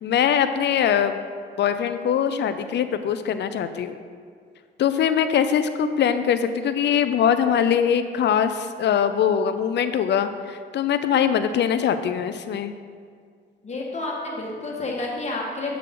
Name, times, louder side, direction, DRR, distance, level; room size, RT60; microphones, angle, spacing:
voice 1, 0.0-1.2 1.6-4.0 4.8-12.7, left 8 dB, 60° left, 10 dB, 0.6 m, -22 dB
voice 2, 13.6-15.8, left 2 dB, 35° left, -2 dB, 1.8 m, -30 dB
8.1 x 6.6 x 3.8 m, 2.1 s
cardioid pair, 90°, 20 cm